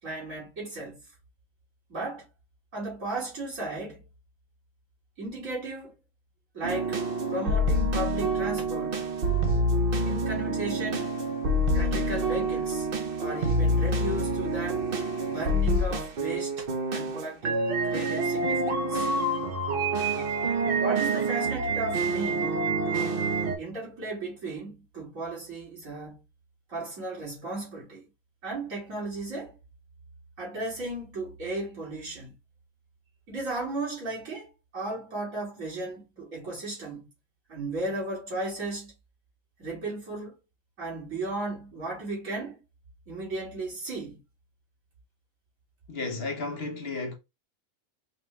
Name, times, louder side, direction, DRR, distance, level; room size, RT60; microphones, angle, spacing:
voice 1, 0.0-1.0 1.9-2.2 2.7-4.0 5.2-5.9 6.5-7.0 7.3-9.0 10.0-11.2 11.7-12.9 13.2-14.9 15.2-16.6 16.9-19.1 20.8-22.5 22.8-23.2 23.6-26.2 26.7-28.1 28.4-29.5 30.4-32.3 33.3-37.1 37.5-38.9 39.6-40.4 40.8-42.6 43.1-44.2, right 2 dB, 80° right, 2.9 m, -35 dB
sound 1, 6.6-23.6, right 1 dB, 50° right, 0.9 m, -27 dB
voice 2, 45.9-47.1, left 3 dB, 50° left, 1.0 m, -33 dB
5.2 x 2.3 x 3.1 m
omnidirectional pair, 1.4 m